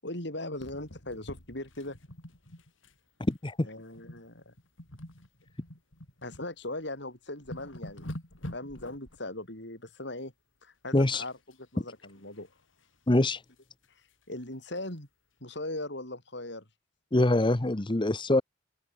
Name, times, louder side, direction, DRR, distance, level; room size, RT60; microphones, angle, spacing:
voice 1, 0.0-2.0 3.6-4.5 6.2-8.1 8.5-10.3 10.6-12.5 14.3-15.1 15.4-16.7, left 1 dB, 60° left, 7.7 m, -39 dB
sound 1, 0.5-3.0 3.2-3.4 3.9-4.3 4.6-6.5 6.9-7.0 7.3-9.2 11.0-11.6 11.9-13.4 13.8-13.9 14.2-14.3 14.7-14.8, left 1 dB, 80° left, 4.8 m, -46 dB
voice 2, 3.2-3.6 10.9-11.2 13.1-13.4 17.1-18.4, left 2 dB, 25° left, 0.9 m, -24 dB
open air
head